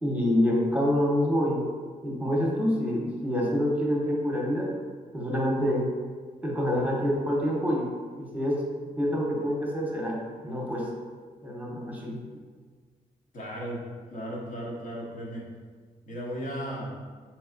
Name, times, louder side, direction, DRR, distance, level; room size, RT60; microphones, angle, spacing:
voice 1, 0.0-1.7 2.0-4.7 5.1-5.8 6.4-7.9 8.2-8.6 9.0-10.2 10.4-10.9 11.4-12.2, equal, 10° right, -3 dB, 0.9 m, -26 dB
voice 2, 13.3-13.8 14.1-15.4 16.1-16.9, equal, 65° left, -4 dB, 1.0 m, -35 dB
4.0 x 3.0 x 2.5 m, 1.5 s
cardioid pair, 80°, 14 cm